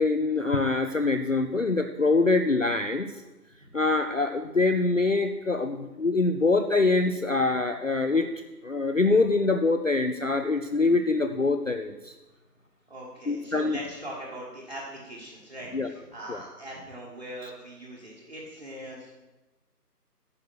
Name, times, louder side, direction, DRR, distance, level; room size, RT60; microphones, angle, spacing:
voice 1, 0.0-3.1 3.7-8.3 8.6-12.1 13.3-13.8 15.7-15.9 16.3-16.4 17.4-17.5, left 3 dB, 55° left, 7 dB, 0.5 m, -24 dB
voice 2, 12.9-19.1, right 1 dB, 40° right, -5 dB, 1.6 m, -41 dB
9.6 x 6.6 x 6.3 m, 1.1 s
figure-of-eight pair, 180°, 48 cm